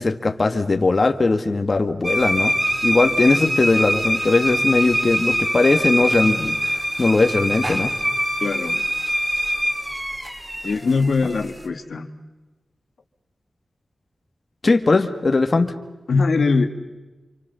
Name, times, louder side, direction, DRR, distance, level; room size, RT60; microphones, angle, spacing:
voice 1, 0.0-2.5 2.8-7.9 14.6-15.7, left 3 dB, 45° left, 6 dB, 1.8 m, -19 dB
sound 1, 2.0-11.7, equal, 15° right, 4.1 m, -24 dB
voice 2, 8.4-8.8 10.6-12.1 16.1-16.7, left 4 dB, 75° left, 6 dB, 1.9 m, -21 dB
28.5 x 27.0 x 7.0 m, 1.1 s
wide cardioid pair, 85°, 0 cm